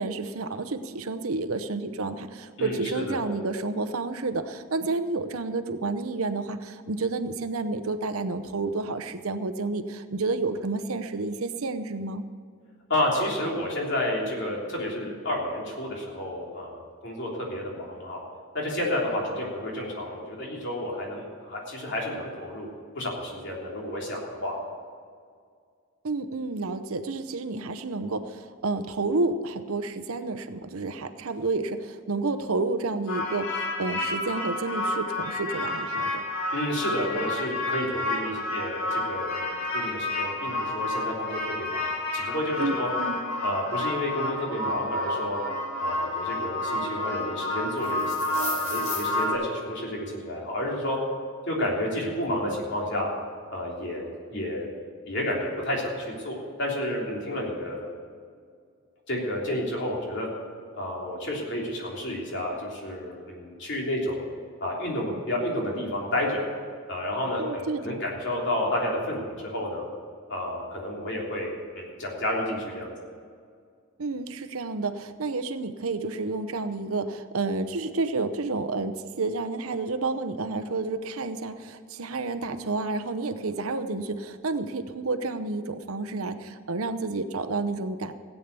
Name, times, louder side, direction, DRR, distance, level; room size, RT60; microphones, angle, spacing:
voice 1, 0.0-12.2 26.0-36.2 42.6-43.2 67.4-68.0 74.0-88.1, right 3 dB, 80° right, 10 dB, 0.8 m, -30 dB
voice 2, 2.6-3.2 12.9-18.2 18.5-22.7 22.9-24.6 36.5-41.8 42.1-42.9 43.4-45.4 45.8-51.0 51.5-53.1 53.5-54.7 55.0-57.8 59.1-60.3 60.7-64.2 64.6-66.4 66.9-69.8 70.3-72.9, left 1 dB, 55° left, -2 dB, 3.3 m, -30 dB
sound 1, 33.1-49.3, left 2 dB, 70° left, 3.7 m, -30 dB
16.5 x 8.4 x 6.9 m, 2.1 s
head